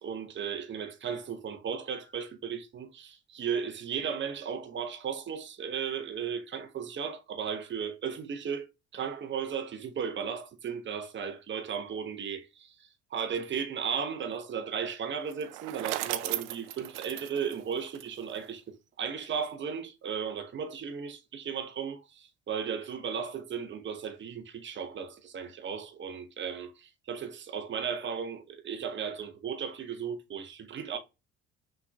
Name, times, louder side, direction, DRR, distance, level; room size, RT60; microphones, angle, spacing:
voice 1, 0.0-8.7 8.9-12.8 13.1-31.0, right 7 dB, 35° right, 1.0 m, -35 dB
Bicycle, 15.2-18.5, right 16 dB, 65° right, 0.6 m, -36 dB
5.8 x 3.6 x 2.3 m
figure-of-eight pair, 55°, 34 cm